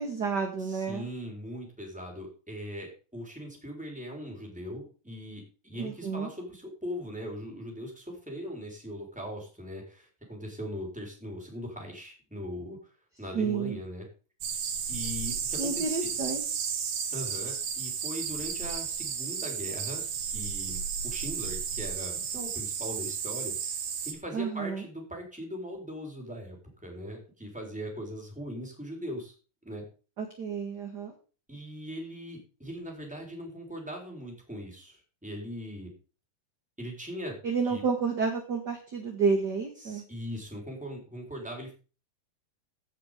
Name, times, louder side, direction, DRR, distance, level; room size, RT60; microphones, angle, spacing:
voice 1, 0.0-1.1 5.8-6.3 13.3-13.8 15.6-16.4 24.3-24.8 30.2-31.1 37.4-40.0, right 5 dB, 40° right, 3 dB, 1.7 m, -30 dB
voice 2, 0.6-12.8 13.2-14.0 14.9-16.1 17.1-23.8 24.0-29.3 29.6-29.8 31.5-35.9 36.8-37.4 37.6-37.8 39.8-41.7, equal, ahead, 0 dB, 3.4 m, -40 dB
sound 1, 14.4-24.1, right 7 dB, 65° right, 2.9 m, -33 dB
16.0 x 6.0 x 5.0 m, 0.36 s
omnidirectional pair, 3.9 m